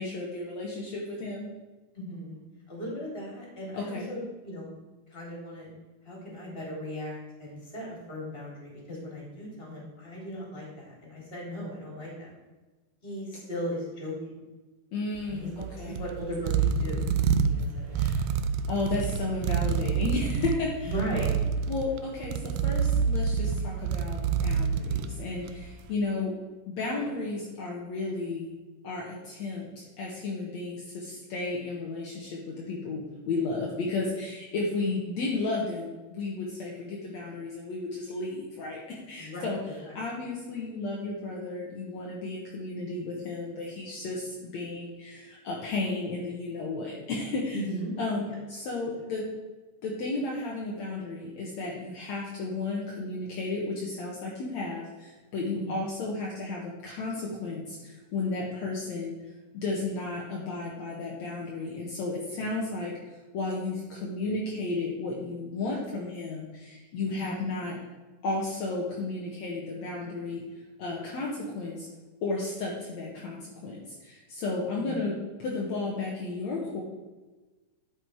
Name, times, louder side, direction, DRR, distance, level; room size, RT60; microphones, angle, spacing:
voice 1, 0.0-1.5 3.7-4.1 14.9-16.0 17.9-18.3 18.7-20.9 21.7-26.3 26.7-28.5 28.8-39.6 39.9-47.6 48.0-49.2 49.8-59.2 59.5-62.9 63.3-67.8 68.2-70.4 70.8-71.9 72.2-76.8, left 3 dB, 65° left, -3 dB, 2.6 m, -33 dB
voice 2, 1.9-4.7 5.1-5.7 6.0-12.3 13.0-14.3 15.3-15.5 15.8-17.1 17.4-18.4 20.8-21.4 34.7-35.0 39.2-39.5 39.8-39.9 47.5-47.9 48.3-48.4 55.5-55.8 67.1-67.4 74.7-75.1, equal, 15° left, -4 dB, 3.9 m, -37 dB
sound 1, 15.2-25.8, right 6 dB, 90° right, 2.2 m, -28 dB
11.5 x 7.6 x 4.7 m, 1.2 s
omnidirectional pair, 3.6 m